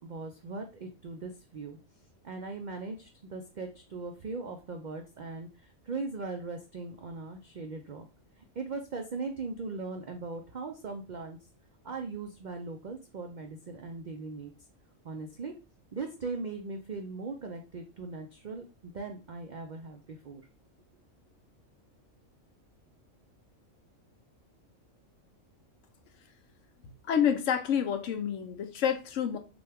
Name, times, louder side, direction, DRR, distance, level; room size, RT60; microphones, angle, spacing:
voice 1, 0.0-1.8 2.2-8.1 8.6-11.4 11.8-14.5 15.0-15.5 15.9-20.4, right 3 dB, 70° right, 0.4 m, -39 dB
voice 2, 26.8-29.4, left 8 dB, 70° left, 1.0 m, -28 dB
6.0 x 2.3 x 3.4 m
omnidirectional pair, 1.4 m